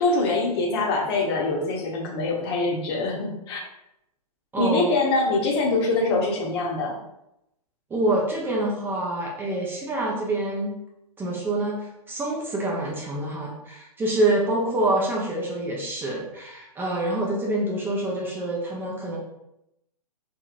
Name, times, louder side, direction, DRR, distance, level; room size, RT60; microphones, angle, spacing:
voice 1, 0.0-3.6 4.6-6.9, left 2 dB, 40° left, 0 dB, 0.9 m, -24 dB
voice 2, 4.5-4.9 7.9-10.8 11.2-19.2, right 1 dB, 10° right, -3 dB, 0.5 m, -26 dB
2.9 x 2.8 x 2.4 m, 0.84 s
figure-of-eight pair, 120°, 20 cm